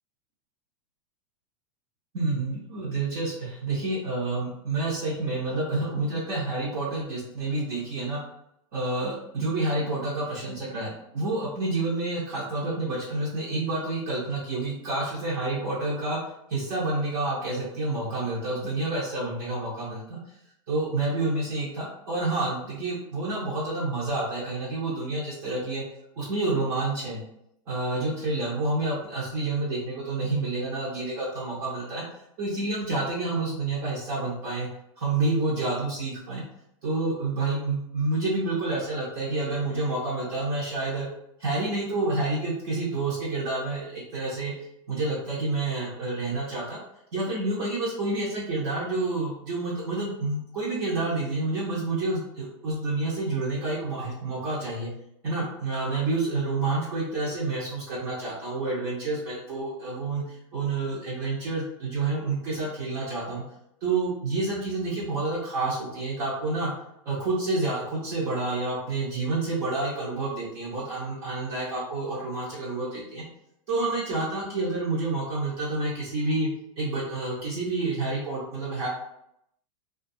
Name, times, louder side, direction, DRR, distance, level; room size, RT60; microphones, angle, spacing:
voice 1, 2.1-8.2 8.7-16.2 16.5-20.2 20.7-25.8 26.2-27.2 27.7-32.0 32.4-34.7 35.0-36.4 36.8-41.1 41.4-44.5 44.9-46.8 47.1-54.9 55.2-60.2 60.5-63.4 63.8-66.7 67.1-73.2 73.7-76.5 76.8-78.9, right 2 dB, 40° right, -6 dB, 0.7 m, -29 dB
2.3 x 2.3 x 2.6 m, 0.78 s
supercardioid pair, 160°, 17 cm